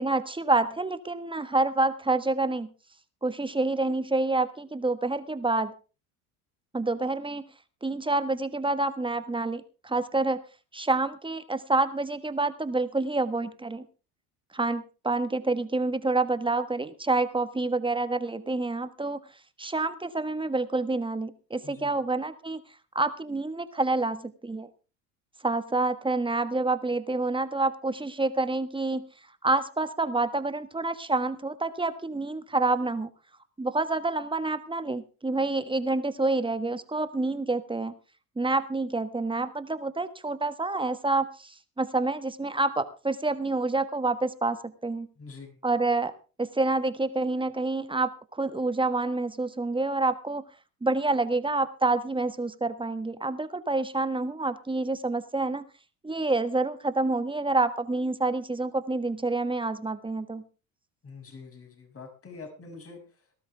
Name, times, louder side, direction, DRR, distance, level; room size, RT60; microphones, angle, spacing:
voice 1, 0.0-2.7 3.2-5.7 6.7-7.4 7.8-10.4 10.7-13.8 14.5-19.2 19.6-22.6 22.9-24.7 25.4-29.0 29.4-33.1 33.6-37.9 38.4-45.1 45.6-46.1 46.4-50.4 50.8-55.6 56.0-60.4, right 2 dB, 10° right, 12 dB, 1.4 m, -28 dB
voice 2, 45.2-45.6 61.0-63.0, left 4 dB, 35° left, 4 dB, 6.3 m, -45 dB
19.0 x 12.5 x 3.5 m, 0.33 s
supercardioid pair, 95°, 41 cm